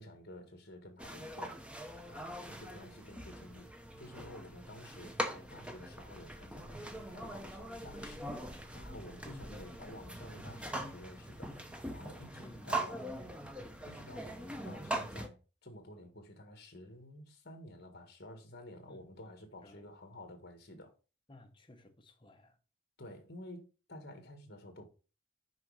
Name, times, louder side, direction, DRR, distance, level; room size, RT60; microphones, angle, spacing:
voice 1, 0.0-1.8 2.1-11.6 11.9-13.1 13.9-20.9 23.0-24.9, left 1 dB, 50° left, 1.7 m, -51 dB
sound 1, 1.0-15.3, right 1 dB, 5° right, 0.7 m, -42 dB
voice 2, 9.2-9.6 12.4-12.7 18.8-19.1 19.6-19.8 21.3-22.6, left 2 dB, 25° left, 0.9 m, -55 dB
6.4 x 5.1 x 4.8 m
head